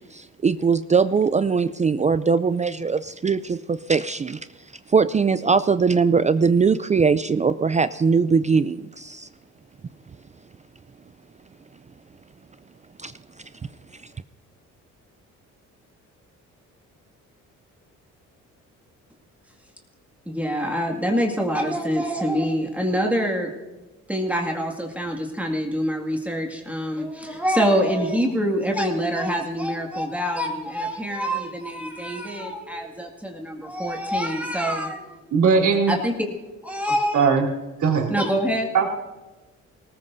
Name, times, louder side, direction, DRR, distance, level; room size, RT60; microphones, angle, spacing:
voice 1, 0.0-4.4 4.9-9.3 13.0-13.1, right 5 dB, 25° right, 13 dB, 0.4 m, -21 dB
voice 2, 20.3-23.5 24.1-35.2 35.9-36.3 36.6-37.3 38.1-38.7, equal, 5° right, 0 dB, 2.1 m, -25 dB
voice 3, 35.3-36.0 37.1-37.5 37.8-38.1 38.7-38.9, right 5 dB, 70° right, -3 dB, 3.5 m, -19 dB
22.0 x 19.0 x 2.7 m, 1.2 s
cardioid pair, 90°, 30 cm